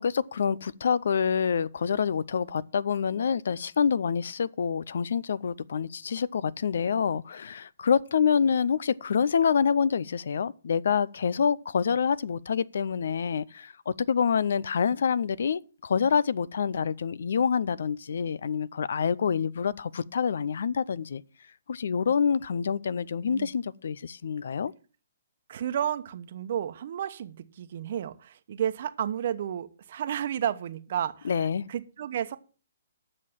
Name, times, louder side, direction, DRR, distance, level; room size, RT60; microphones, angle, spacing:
voice 1, 0.0-21.2 21.7-24.7 31.2-31.7, left 6 dB, 65° left, 0.5 m, -27 dB
voice 2, 25.5-31.3 31.7-32.4, right 9 dB, 55° right, 1.0 m, -32 dB
9.8 x 6.5 x 7.2 m
hypercardioid pair, 135°, 0 cm